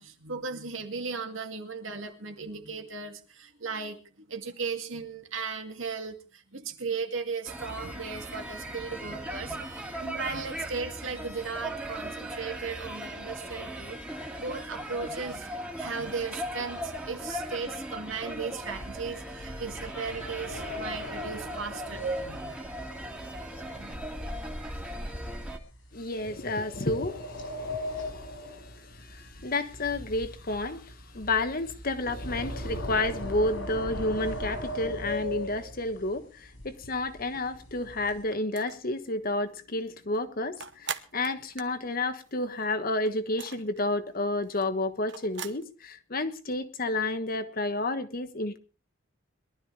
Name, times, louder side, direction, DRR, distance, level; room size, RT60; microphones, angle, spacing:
voice 1, 0.0-14.0 14.4-15.5 15.8-22.6 23.8-24.7, right 5 dB, 85° right, 2.2 m, -37 dB
sound 1, 7.4-25.6, equal, 5° right, 2.0 m, -38 dB
sound 2, 18.7-24.0 24.3-24.7 25.2-25.3 26.1-29.4 29.7-36.0 36.6-36.7 37.0-37.2 37.5-38.2, left 1 dB, 85° left, 4.9 m, -37 dB
voice 2, 25.9-48.6, left 2 dB, 50° left, 1.3 m, -31 dB
sound 3, 38.3-38.9 39.3-39.4 39.7-42.7 43.0-45.6, right 8 dB, 65° right, 1.0 m, -41 dB
22.0 x 12.5 x 3.3 m
head